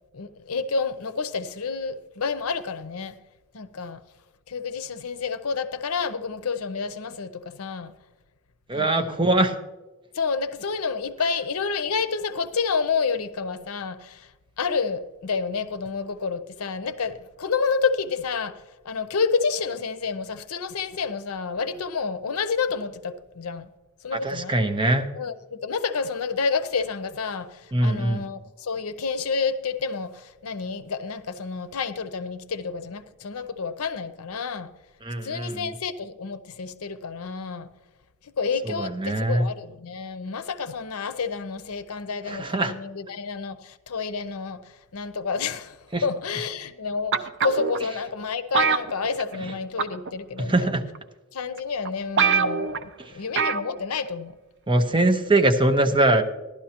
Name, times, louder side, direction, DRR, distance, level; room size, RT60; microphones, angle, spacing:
voice 1, 0.1-3.1 3.5-4.0 4.5-7.9 8.7-9.1 10.1-14.3 14.6-23.7 24.0-24.6 25.1-34.7 35.2-37.7 38.2-50.8 51.3-54.3, left 5 dB, 80° left, 0.7 m, -29 dB
voice 2, 8.7-9.6 24.1-25.1 27.7-28.2 35.0-35.7 38.7-39.5 42.3-42.7 45.9-46.0 49.4-49.5 50.5-50.8 54.7-56.2, right 2 dB, 25° right, 0.8 m, -22 dB
sound 1, 47.1-47.8 48.5-49.5 49.8-50.1 50.9-51.0 51.6-51.7 51.9-52.0 52.2-52.8 53.4-53.7 54.0-54.1, right 5 dB, 55° right, 0.6 m, -23 dB
15.5 x 12.0 x 2.9 m
head